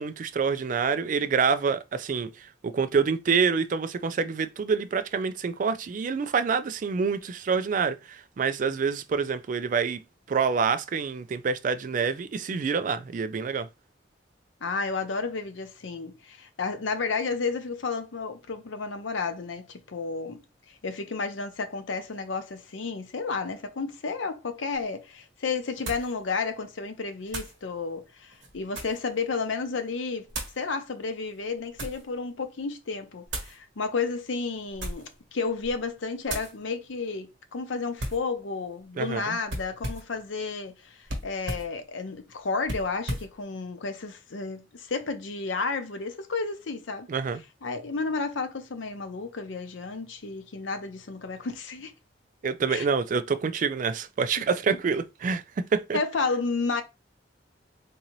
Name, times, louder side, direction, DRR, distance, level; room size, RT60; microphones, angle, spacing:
voice 1, 0.0-10.0 10.3-13.7 39.0-39.4 47.1-47.4 52.4-56.0, right 5 dB, 45° right, 0.3 m, -27 dB
voice 2, 14.6-20.4 20.7-30.3 30.6-47.1 47.6-51.9 52.7-52.9 55.9-56.8, left 4 dB, 85° left, 0.6 m, -32 dB
sound 1, 24.7-24.8 25.8-26.1 27.3-27.6 28.3-29.1 30.3-30.6 31.4-32.1 33.3-33.6 34.7-35.2 35.6-35.8 36.3-36.5 38.0-38.3 39.5-40.2 41.1-41.7 42.6-43.3, right 1 dB, 75° right, 1.3 m, -35 dB
3.7 x 2.7 x 3.0 m
head